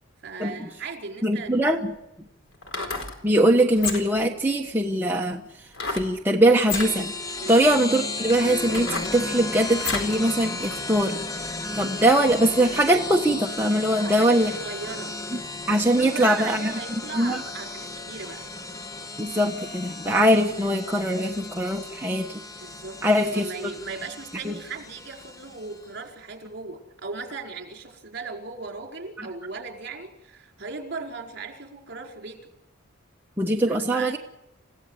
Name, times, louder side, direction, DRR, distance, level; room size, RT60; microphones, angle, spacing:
voice 1, 0.2-1.5 7.4-7.7 13.9-15.2 16.0-18.5 22.6-32.5 33.7-34.2, right 4 dB, 50° right, 3 dB, 4.6 m, -37 dB
voice 2, 1.2-1.9 3.2-5.4 5.9-7.1 7.5-11.3 11.7-14.5 15.3-15.4 15.7-16.7 17.2-17.4 19.2-22.3 23.0-23.7 24.4-24.5 33.4-34.2, right 1 dB, 10° right, 0 dB, 1.2 m, -22 dB
sound 1, 2.5-3.2 3.7-4.3 5.7-6.1 6.6-6.9 7.6-7.7 8.3-10.2 10.6-10.7, left 3 dB, 65° left, 4.3 m, -31 dB
sound 2, 6.7-25.9, left 3 dB, 15° left, 1.2 m, -35 dB
29.0 x 16.5 x 8.1 m, 0.89 s
head